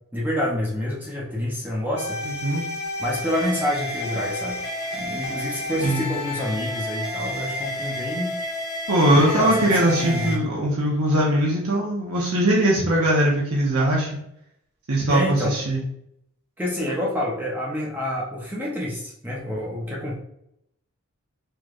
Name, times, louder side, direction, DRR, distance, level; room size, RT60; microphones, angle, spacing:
voice 1, 0.1-2.2 3.0-4.6 4.9-8.3 9.1-10.4 15.1-15.6 16.6-20.1, left 1 dB, 10° right, -4 dB, 0.7 m, -28 dB
sound 1, 2.0-10.4, left 1 dB, 75° left, 1.3 m, -31 dB
voice 2, 2.2-2.7 5.8-6.0 8.9-14.1 14.9-15.8, right 1 dB, 80° right, -3 dB, 1.0 m, -21 dB
4.8 x 3.1 x 2.5 m, 0.74 s
head